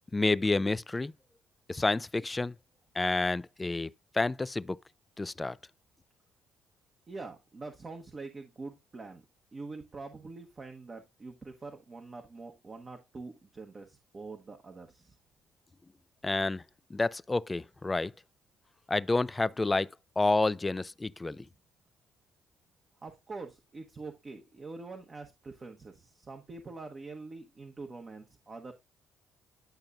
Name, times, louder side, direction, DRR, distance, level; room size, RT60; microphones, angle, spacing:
voice 1, 0.1-1.1 1.7-2.5 3.0-3.9 4.1-4.8 5.2-5.6 16.2-16.6 16.9-18.1 18.9-19.9 20.2-21.4, left 2 dB, 20° left, 0.4 m, -29 dB
voice 2, 7.1-9.2 9.5-15.1 23.0-28.7, right 3 dB, 35° right, 1.2 m, -45 dB
10.5 x 5.7 x 2.6 m
supercardioid pair, 65°, 0 cm